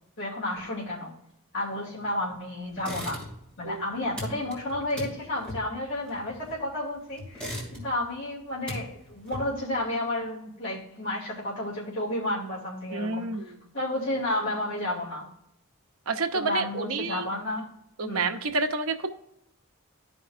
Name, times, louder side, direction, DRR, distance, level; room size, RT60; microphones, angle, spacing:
voice 1, 0.2-1.1 1.5-3.2 3.6-15.3 16.3-17.7 18.0-18.4, left 1 dB, 55° left, -7 dB, 2.8 m, -32 dB
sound 1, 2.8-3.6 3.8-6.7 7.2-8.1 8.4-9.7, equal, 5° left, 2.8 m, -38 dB
voice 2, 3.6-4.0 12.9-13.7 16.1-17.2 18.0-19.1, right 3 dB, 75° right, 6 dB, 0.9 m, -29 dB
13.5 x 5.3 x 2.5 m, 0.79 s
head